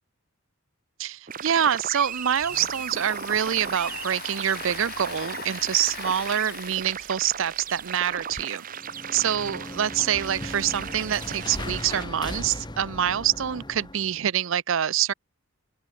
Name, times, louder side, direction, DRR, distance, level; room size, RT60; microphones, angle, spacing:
voice 1, 1.0-8.6 9.1-15.1, right 9 dB, 65° right, 0.5 m, -26 dB
sound 1, 1.3-12.1, right 7 dB, 40° right, 0.9 m, -37 dB
Domestic sounds home sounds, 1.4-1.5 1.8-8.4, left 6 dB, 45° left, 3.7 m, -41 dB
sound 2, 8.7-14.2, left 1 dB, 20° left, 2.7 m, -38 dB
open air
head